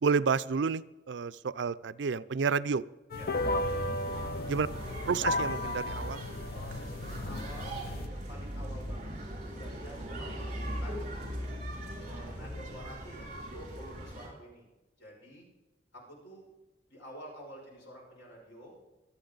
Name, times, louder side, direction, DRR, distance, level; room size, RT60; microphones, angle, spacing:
voice 1, 0.0-2.8 4.5-4.7 5.1-6.2, right 5 dB, 75° right, 16 dB, 0.5 m, -30 dB
sound 1, 3.1-8.1, left 2 dB, 55° left, 0.7 m, -34 dB
sound 2, 3.3-14.3, equal, 45° right, 5.9 m, -39 dB
voice 2, 4.1-4.8 6.5-9.1 9.4-11.1 12.0-14.7 15.0-15.5 15.9-16.5 16.9-18.8, equal, 80° left, -3 dB, 6.3 m, -49 dB
25.5 x 8.7 x 4.0 m, 1.1 s
head